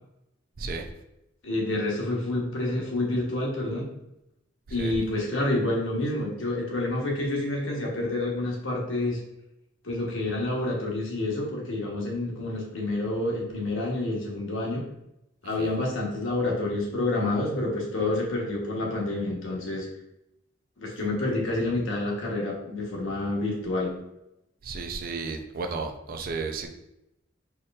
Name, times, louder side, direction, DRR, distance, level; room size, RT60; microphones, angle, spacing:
voice 1, 1.4-3.9 4.7-9.2 9.8-14.8 15.4-19.9 20.8-23.9, left 2 dB, 90° left, -2 dB, 1.0 m, -28 dB
voice 2, 24.6-26.7, right 4 dB, 50° right, 5 dB, 0.4 m, -33 dB
4.3 x 3.0 x 2.3 m, 0.86 s
head